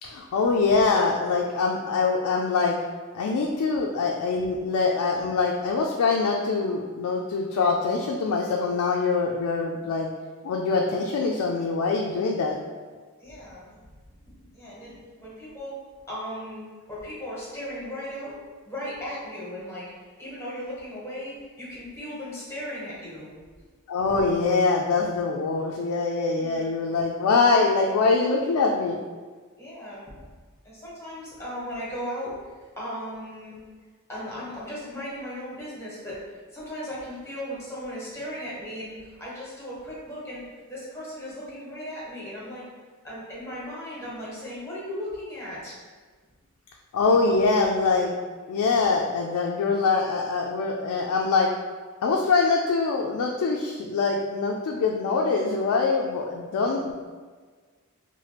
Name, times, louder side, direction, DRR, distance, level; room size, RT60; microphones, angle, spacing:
voice 1, 0.0-2.8 3.1-10.1 10.4-12.6 23.9-29.0 46.9-48.1 48.5-51.5 52.0-56.9, left 4 dB, 85° left, 0 dB, 0.3 m, -24 dB
voice 2, 13.2-13.8 14.3-15.8 16.1-18.3 18.6-19.8 20.2-23.3 26.4-26.7 29.6-30.2 30.6-32.3 32.8-33.6 34.1-36.2 36.5-42.6 43.0-45.8, equal, 10° left, -7 dB, 1.0 m, -37 dB
2.9 x 2.1 x 3.2 m, 1.5 s
head